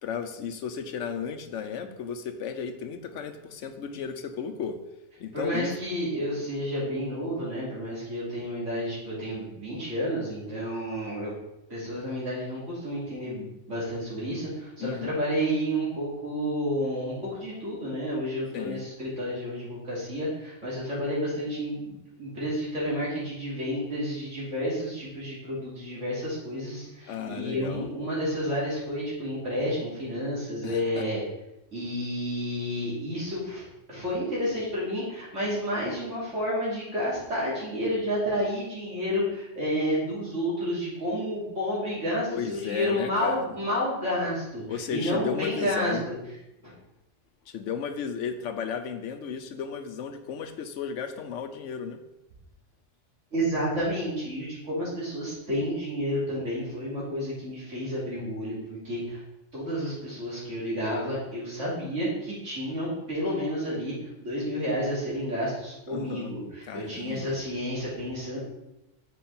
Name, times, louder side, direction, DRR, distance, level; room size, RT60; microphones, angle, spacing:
voice 1, 0.0-4.8 5.2-5.7 6.3-6.5 14.8-15.2 18.5-18.8 27.1-27.9 30.6-31.1 42.3-43.6 44.7-46.1 46.7-46.8 47.5-52.0 65.9-66.3 66.7-67.4, left 7 dB, 85° left, 8 dB, 1.0 m, -34 dB
voice 2, 5.3-11.3 11.7-31.2 31.7-46.1 46.6-46.7 53.3-59.2 59.5-63.9 64.2-68.4, equal, 80° right, -7 dB, 3.6 m, -30 dB
7.3 x 5.6 x 4.3 m, 0.91 s
omnidirectional pair, 1.2 m